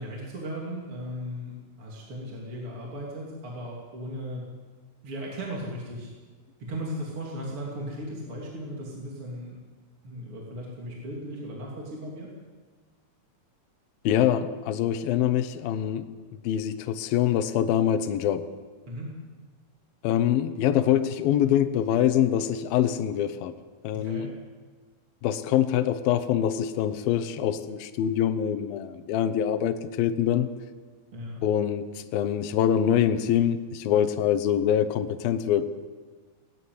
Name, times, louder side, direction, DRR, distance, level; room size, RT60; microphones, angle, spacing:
voice 1, 0.0-4.4 5.0-6.1 6.6-9.6 10.0-12.3 18.9-19.1 23.9-24.3 31.1-31.4, equal, 35° right, -3 dB, 3.5 m, -36 dB
voice 2, 14.0-16.1 16.4-18.5 20.0-23.5 23.8-24.3 25.2-30.5 31.4-35.7, left 10 dB, 75° left, 9 dB, 2.6 m, -24 dB
18.0 x 15.5 x 9.5 m, 1.4 s
omnidirectional pair, 4.7 m